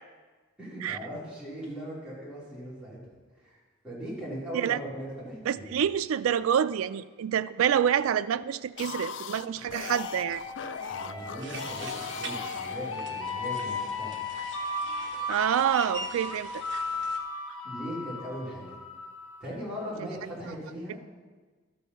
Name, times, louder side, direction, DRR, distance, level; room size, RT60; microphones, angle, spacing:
voice 1, 0.6-3.0 3.4-3.6 3.8-5.7 10.9-14.2 17.6-18.7 19.4-21.0, equal, 5° right, -9 dB, 3.4 m, -39 dB
voice 2, 5.5-10.4 15.3-16.5, right 9 dB, 80° right, 14 dB, 0.3 m, -27 dB
sound 1, 8.6-13.4, left 7 dB, 60° left, 0.3 m, -40 dB
sound 2, 9.8-19.4, left 3 dB, 85° left, 1.2 m, -36 dB
sound 3, 11.4-17.2, right 3 dB, 60° right, 0.9 m, -44 dB
12.5 x 5.5 x 5.5 m, 1.4 s
head